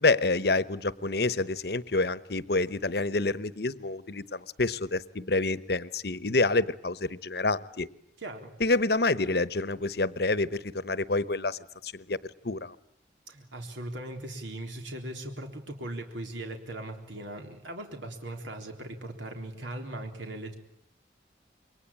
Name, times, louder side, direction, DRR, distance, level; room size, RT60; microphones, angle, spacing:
voice 1, 0.0-7.9 8.6-12.2 12.4-12.7, left 3 dB, 60° left, 16 dB, 1.0 m, -28 dB
voice 2, 8.2-8.5 13.3-20.5, right 1 dB, 90° right, 3 dB, 3.8 m, -39 dB
27.5 x 23.0 x 8.6 m, 0.69 s
head